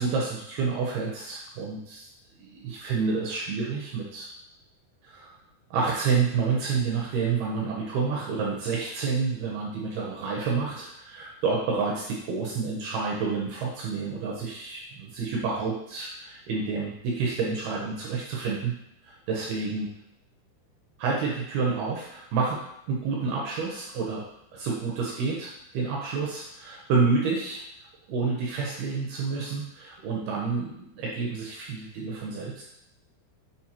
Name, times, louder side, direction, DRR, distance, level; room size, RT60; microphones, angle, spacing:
voice 1, 0.0-2.1 2.4-4.3 5.0-5.3 5.7-18.7 19.0-19.9 21.0-27.6 28.1-32.6, right 4 dB, 80° right, -2 dB, 2.2 m, -29 dB
7.3 x 4.4 x 2.9 m, 0.78 s
omnidirectional pair, 5.5 m